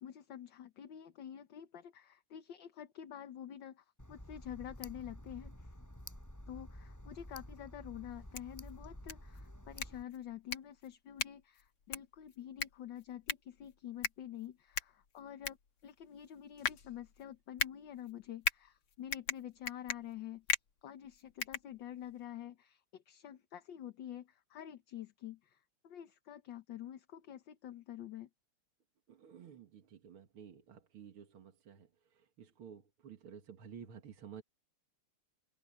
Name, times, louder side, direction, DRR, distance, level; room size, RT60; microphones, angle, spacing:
voice 1, 0.0-5.7 6.5-15.6 15.8-20.5 20.8-28.3, left 10 dB, 65° left, 1.7 m, -48 dB
Tick, 4.0-10.0, left 1 dB, 5° left, 6.5 m, -51 dB
sound 1, 8.1-22.2, left 6 dB, 80° left, 2.8 m, -41 dB
voice 2, 29.1-34.4, right 7 dB, 80° right, 2.6 m, -53 dB
omnidirectional pair, 2.4 m